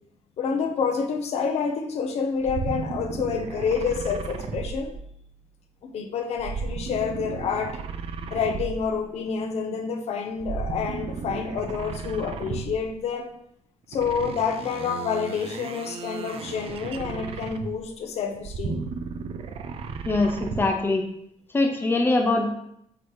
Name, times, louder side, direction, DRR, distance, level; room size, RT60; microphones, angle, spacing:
voice 1, 0.4-4.9 5.8-7.8 8.3-13.3 13.9-18.9, left 6 dB, 65° left, 4 dB, 0.9 m, -28 dB
sound 1, 2.4-5.5 6.4-9.1 10.4-13.0 13.9-17.9 18.3-20.8, right 5 dB, 55° right, 0.6 m, -34 dB
voice 2, 20.0-21.0 21.5-22.5, left 2 dB, 20° left, 2 dB, 0.9 m, -22 dB
8.4 x 3.2 x 4.8 m, 0.72 s
cardioid pair, 150°, 12 cm